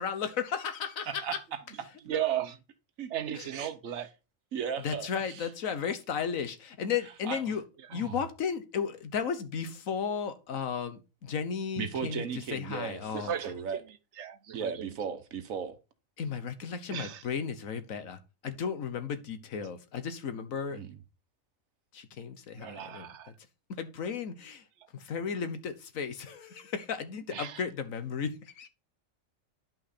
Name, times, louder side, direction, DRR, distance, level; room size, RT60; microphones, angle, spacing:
voice 1, 0.0-1.4 3.4-3.5 4.8-7.6 7.9-13.3 16.2-20.8 21.9-23.1 23.8-24.6 24.9-28.7, left 6 dB, 80° left, 1.5 m, -34 dB
voice 2, 1.1-1.6 2.0-2.4 3.0-3.1 3.5-3.7 4.5-5.5 7.2-7.4 7.9-8.1 11.8-13.0 13.4-13.8 14.5-15.7 20.7-20.9, right 7 dB, 80° right, 1.4 m, -36 dB
voice 3, 2.0-2.6 3.1-4.1 7.8-8.0 13.1-15.1 16.9-17.2 22.6-23.3 27.3-27.6, right 10 dB, 60° right, 1.1 m, -36 dB
10.5 x 5.8 x 4.2 m
omnidirectional pair, 1.4 m